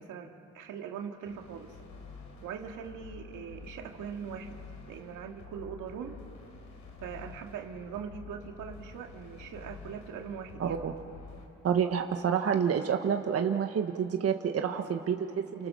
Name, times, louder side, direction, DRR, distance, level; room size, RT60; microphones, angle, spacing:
voice 1, 0.0-1.7 2.4-4.6 4.9-6.2 7.0-10.8, right 7 dB, 85° right, 3 dB, 2.4 m, -41 dB
sound 1, 1.3-11.4, left 4 dB, 75° left, 4.6 m, -49 dB
voice 2, 10.6-10.9 11.6-15.7, right 7 dB, 50° right, 5 dB, 1.4 m, -28 dB
29.5 x 29.0 x 6.5 m, 2.7 s
cardioid pair, 90°, 30 cm